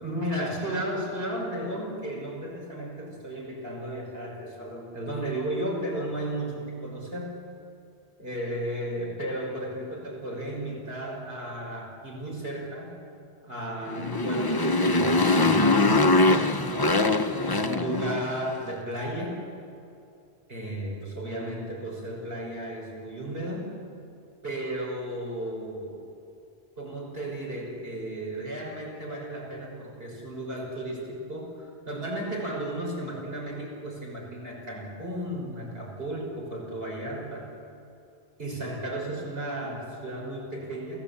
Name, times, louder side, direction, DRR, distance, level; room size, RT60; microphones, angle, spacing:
voice 1, 0.0-7.4 8.2-12.9 13.4-16.5 17.4-19.5 20.5-23.7 24.4-26.0 26.8-37.5 38.4-41.0, right 1 dB, 65° right, -2 dB, 6.3 m, -34 dB
Motorcycle, 13.9-18.5, left 2 dB, 25° left, 0.9 m, -22 dB
28.5 x 17.5 x 8.7 m, 2.7 s
omnidirectional pair, 1.1 m